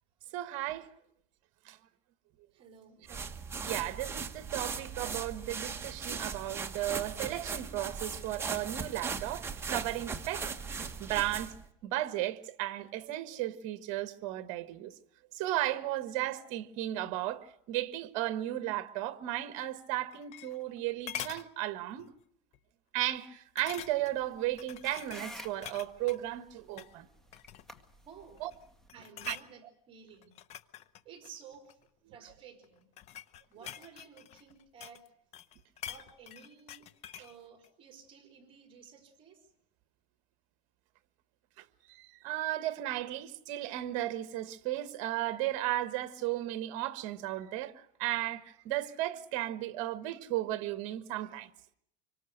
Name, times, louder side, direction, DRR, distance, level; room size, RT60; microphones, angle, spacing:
voice 1, 0.3-0.9 1.6-1.8 3.7-11.5 11.8-14.9 15.3-22.1 22.9-27.1 28.4-28.5 29.3-29.4 32.1-32.2 41.6-51.5, right 14 dB, 55° right, 1.5 m, -35 dB
voice 2, 2.5-3.4 28.0-28.5 28.9-30.3 31.0-31.8 32.1-32.9 33.5-35.0 35.8-36.9 37.2-39.4, right 6 dB, 35° right, 4.3 m, -54 dB
sound 1, 3.1-11.6, right 5 dB, 15° right, 1.4 m, -38 dB
sound 2, 19.9-20.8 21.1-21.5 22.0-22.2 22.5-22.6 23.6-24.2 24.6-26.2 26.7-26.9 27.3-27.8 28.4-28.6 28.9-29.5 30.2-31.8 32.6-35.1 35.3-37.3 37.6-37.7, left 10 dB, 45° left, 1.0 m, -45 dB
sound 3, 23.8-28.9, equal, 5° left, 1.8 m, -52 dB
25.5 x 24.5 x 6.6 m
supercardioid pair, 135°, 16 cm